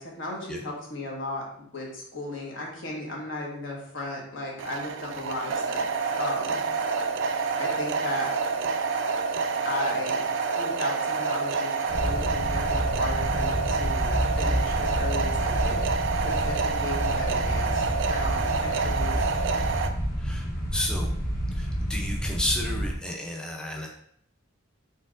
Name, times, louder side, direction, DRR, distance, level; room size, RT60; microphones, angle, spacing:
voice 1, 0.0-5.8 6.2-6.6 7.6-8.3 9.6-10.2 10.6-15.8 16.2-19.3, left 2 dB, 65° left, -1 dB, 1.2 m, -35 dB
sound 1, 4.6-19.9, right 4 dB, 65° right, 0.4 m, -28 dB
sound 2, 11.9-23.0, equal, 50° left, 0.9 m, -29 dB
voice 2, 20.2-21.1 21.5-23.9, left 1 dB, 5° left, 0 dB, 0.4 m, -32 dB
4.4 x 4.3 x 2.4 m, 0.68 s
head